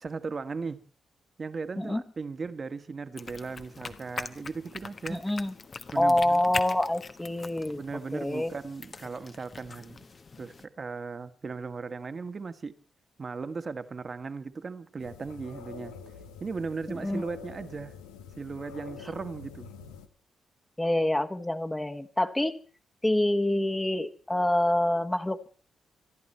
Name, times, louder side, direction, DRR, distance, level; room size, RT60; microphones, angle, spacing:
voice 1, 0.0-0.8 1.4-5.2 5.9-6.4 7.7-10.0 10.4-12.7 13.2-15.9 16.4-17.9 18.4-19.7, right 4 dB, 45° right, 1.7 m, -37 dB
sound 1, 3.2-10.7, left 4 dB, 45° left, 1.3 m, -42 dB
voice 2, 5.1-5.5 5.9-7.8 8.1-8.5 16.9-17.3 20.8-22.6 23.0-25.5, left 1 dB, 15° left, 1.5 m, -26 dB
sound 2, 15.0-20.1, left 7 dB, 90° left, 1.2 m, -46 dB
25.5 x 11.0 x 4.4 m
hypercardioid pair, 45°, 0 cm